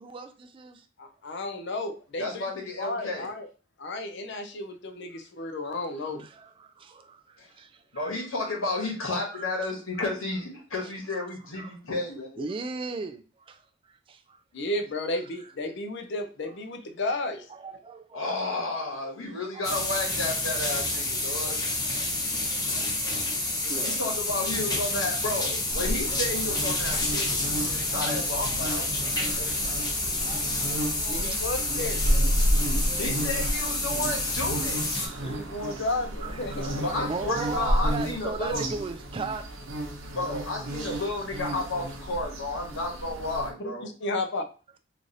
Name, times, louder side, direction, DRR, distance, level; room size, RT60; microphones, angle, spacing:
voice 1, 0.0-0.9 5.4-5.8 6.2-8.1 8.4-8.5 9.3-9.5 11.1-11.2 11.6-11.8 12.4-13.6 13.9-14.4 15.4-15.5 17.5-18.3 19.5-19.9 20.3-20.7 21.4-22.2 22.5-23.2 23.6-24.0 24.3-24.8 26.1-26.2 27.9-28.2 28.5-32.3 32.6-33.7 35.0-35.4 35.8-35.9 36.2-39.4 40.0-40.1, right 4 dB, 25° right, 0.3 m, -40 dB
voice 2, 1.0-2.5 2.8-3.5 3.8-6.2 14.5-17.5 31.1-32.0 35.2-37.1 43.6-44.4, left 2 dB, 60° left, 0.6 m, -33 dB
voice 3, 2.2-3.3 7.4-7.5 7.9-12.5 18.1-21.6 23.8-28.9 29.3-30.2 33.0-34.9 36.8-38.6 40.1-43.9, left 2 dB, 90° left, 1.3 m, -32 dB
sound 1, 19.6-35.1, left 2 dB, 20° left, 0.7 m, -29 dB
sound 2, 25.7-43.5, equal, 80° right, 0.9 m, -31 dB
3.1 x 2.6 x 3.9 m
head